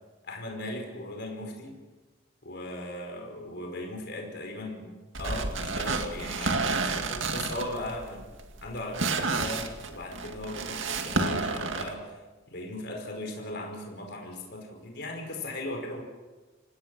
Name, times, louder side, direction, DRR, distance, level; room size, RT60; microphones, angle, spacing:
voice 1, 0.2-1.7 2.4-4.9 5.2-8.3 8.6-12.0 12.5-16.0, left 1 dB, 60° left, 2 dB, 5.1 m, -38 dB
sound 1, 5.1-11.9, right 3 dB, 75° right, 2.2 m, -30 dB
26.0 x 18.5 x 6.2 m, 1.2 s
head